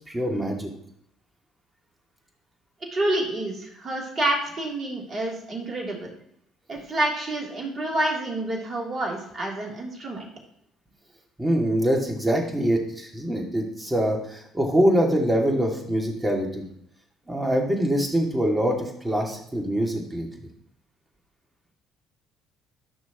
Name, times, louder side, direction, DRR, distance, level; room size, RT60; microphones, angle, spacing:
voice 1, 0.1-0.7 11.4-16.6 17.3-20.3, equal, 15° right, 1 dB, 2.6 m, -24 dB
voice 2, 2.9-6.1 6.7-10.3, right 1 dB, 35° right, -1 dB, 3.4 m, -28 dB
14.0 x 6.1 x 3.1 m, 0.73 s
figure-of-eight pair, 50°, 0 cm